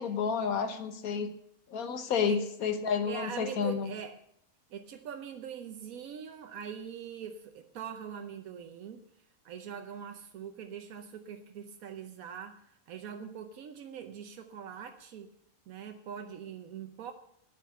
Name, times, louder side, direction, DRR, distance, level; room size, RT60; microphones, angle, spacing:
voice 1, 0.0-1.3 1.7-3.9, left 6 dB, 85° left, 9 dB, 1.5 m, -30 dB
voice 2, 2.0-2.4 3.0-4.2 4.7-9.0 9.4-15.3 15.7-17.1, right 8 dB, 85° right, 7 dB, 1.3 m, -43 dB
10.0 x 8.2 x 8.5 m, 0.72 s
omnidirectional pair, 1.5 m